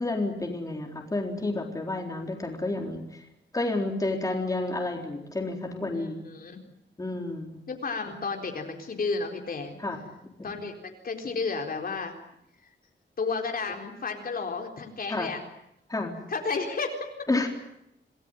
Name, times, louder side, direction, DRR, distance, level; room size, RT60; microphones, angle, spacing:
voice 1, 0.0-3.2 3.5-6.3 7.0-7.6 9.8-10.0 10.2-10.5 15.1-15.3 15.9-16.1 17.3-17.5, left 2 dB, 20° left, 2 dB, 4.1 m, -30 dB
voice 2, 5.9-6.6 7.7-9.8 10.4-12.1 13.2-15.4 16.3-17.1, left 4 dB, 50° left, 3 dB, 4.1 m, -32 dB
28.0 x 19.0 x 9.2 m, 0.80 s
wide cardioid pair, 180°, 19 cm